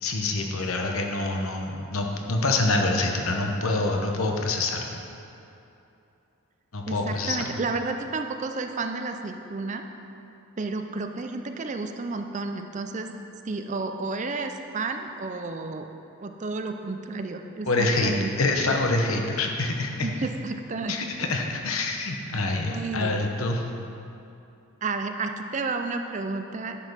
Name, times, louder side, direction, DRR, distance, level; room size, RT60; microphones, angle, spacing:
voice 1, 0.0-4.8 6.7-7.5 17.6-20.1 20.9-23.6, left 2 dB, 75° left, 2 dB, 1.0 m, -26 dB
voice 2, 6.9-9.8 10.6-13.1 13.5-15.9 16.2-18.3 20.0-21.1 22.6-23.3 24.8-26.8, right 3 dB, 35° right, 6 dB, 0.5 m, -31 dB
10.0 x 5.5 x 6.3 m, 2.8 s
head